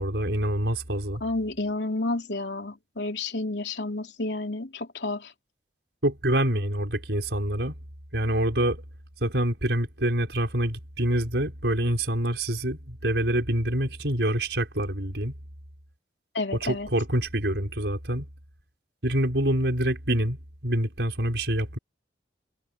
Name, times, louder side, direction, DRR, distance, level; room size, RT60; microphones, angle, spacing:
voice 1, 0.0-1.2 6.0-7.7 8.1-8.8 9.2-15.3 16.6-18.3 19.0-20.4 20.6-21.8, right 1 dB, 80° right, 5.2 m, -26 dB
voice 2, 1.2-5.3 16.3-16.9, left 2 dB, 80° left, 3.1 m, -30 dB
head